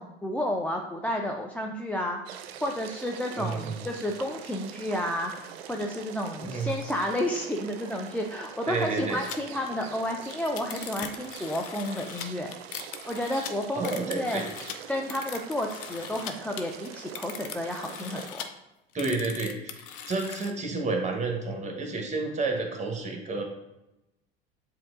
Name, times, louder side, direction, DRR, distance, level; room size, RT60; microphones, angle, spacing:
voice 1, 0.0-12.5 13.1-14.4 14.9-18.4, left 1 dB, 5° left, 1 dB, 0.4 m, -31 dB
sound 1, 2.3-18.3, right 9 dB, 75° right, 0.5 m, -44 dB
voice 2, 3.4-3.7 6.4-6.7 8.7-9.2 13.7-14.5 18.9-23.4, right 3 dB, 25° right, 2 dB, 1.1 m, -30 dB
sound 2, 9.2-9.4 9.7-9.8 10.1-16.3 16.6-18.5 18.9-20.5, left 9 dB, 50° left, 0.6 m, -40 dB
7.4 x 2.7 x 2.5 m, 0.95 s
hypercardioid pair, 75°, 31 cm